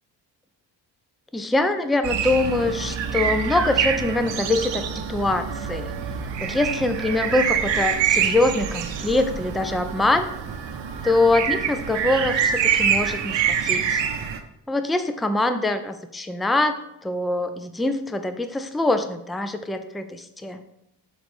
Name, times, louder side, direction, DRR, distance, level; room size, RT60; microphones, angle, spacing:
voice 1, 1.3-4.8 5.1-5.9 6.4-10.3 11.0-14.0 14.7-20.6, left 2 dB, ahead, 8 dB, 0.3 m, -24 dB
sound 1, 2.0-14.4, right 7 dB, 75° right, 0.8 m, -25 dB
6.1 x 4.0 x 5.1 m, 0.82 s
cardioid pair, 110°, 44 cm